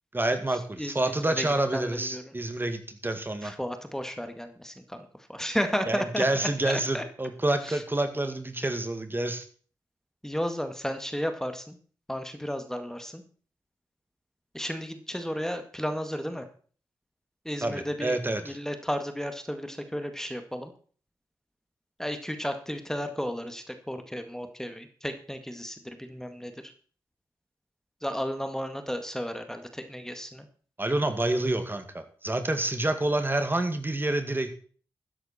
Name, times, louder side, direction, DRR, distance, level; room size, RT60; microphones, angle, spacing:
voice 1, 0.1-3.5 5.9-9.4 17.6-18.6 30.8-34.5, right 2 dB, 25° right, 8 dB, 2.0 m, -28 dB
voice 2, 1.7-2.2 3.4-6.2 6.7-7.0 7.7-7.8 10.2-11.8 12.1-13.2 14.5-16.4 17.5-18.2 18.5-20.7 22.0-26.5 28.0-30.4, equal, 5° left, 7 dB, 1.9 m, -33 dB
13.5 x 10.0 x 4.3 m, 0.43 s
supercardioid pair, 45°, 9 cm